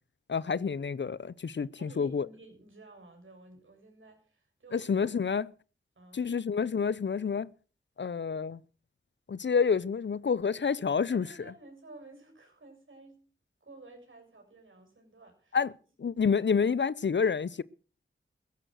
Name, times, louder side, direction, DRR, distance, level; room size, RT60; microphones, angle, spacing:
voice 1, 0.3-2.3 4.7-5.5 6.1-7.5 8.0-8.6 9.3-11.3 15.5-15.7 16.0-17.6, left 6 dB, 60° left, 0.7 m, -28 dB
voice 2, 1.8-5.4 6.0-6.4 11.1-13.3 13.6-15.6, right 2 dB, 70° right, 7.0 m, -53 dB
15.5 x 11.5 x 6.5 m
cardioid pair, 45°, 21 cm